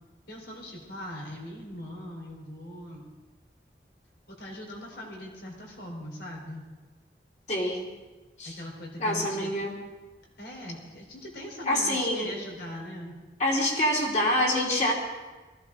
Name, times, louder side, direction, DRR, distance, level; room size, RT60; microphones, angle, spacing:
voice 1, 0.3-3.1 4.3-6.6 8.4-9.5 10.4-13.2, left 1 dB, 75° left, -1 dB, 4.0 m, -40 dB
voice 2, 7.5-7.8 8.4-8.5 9.0-9.7 11.7-12.3 13.4-14.9, left 1 dB, 40° left, -2 dB, 2.8 m, -26 dB
19.5 x 14.5 x 3.8 m, 1.2 s
head